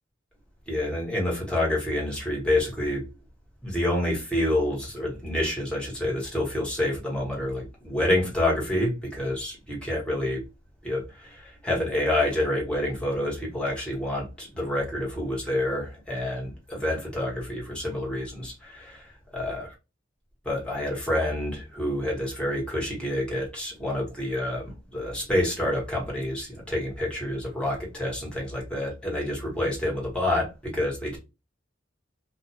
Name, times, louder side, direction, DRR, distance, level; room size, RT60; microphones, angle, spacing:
voice 1, 0.7-3.0 3.6-10.4 10.8-19.7 20.4-31.2, left 1 dB, 5° left, 1.2 m, -28 dB
2.5 x 2.4 x 2.7 m
head